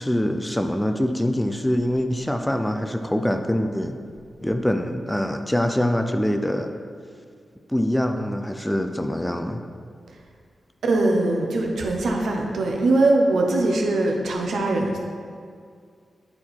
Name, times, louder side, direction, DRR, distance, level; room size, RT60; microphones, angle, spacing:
voice 1, 0.0-4.0 4.4-6.7 7.7-9.6, left 1 dB, 5° left, 6 dB, 0.3 m, -24 dB
voice 2, 10.8-15.0, right 2 dB, 80° right, 1 dB, 1.0 m, -21 dB
9.7 x 4.5 x 4.3 m, 2.2 s
wide cardioid pair, 160°, 0 cm